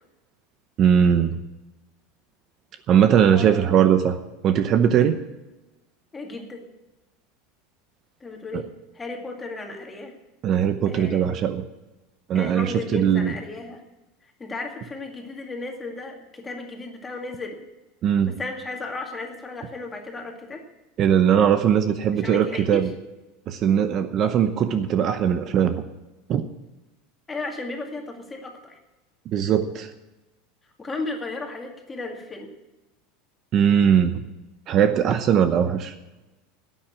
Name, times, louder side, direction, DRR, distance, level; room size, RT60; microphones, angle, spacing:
voice 1, 0.8-1.4 2.9-4.2 4.4-5.2 8.5-8.6 10.4-11.6 12.3-13.3 18.0-18.4 21.0-22.9 23.5-25.8 26.3-26.4 29.3-29.9 33.5-34.2 34.7-35.9, right 8 dB, 40° right, 9 dB, 0.8 m, -20 dB
voice 2, 3.3-3.8 6.1-6.6 8.2-8.7 8.9-10.1 10.8-11.2 12.3-13.8 14.4-17.6 18.3-20.6 22.1-22.9 27.3-28.8 30.8-32.5, left 3 dB, 15° left, 2 dB, 2.1 m, -34 dB
11.0 x 8.9 x 8.6 m, 1.0 s
supercardioid pair, 135°, 0 cm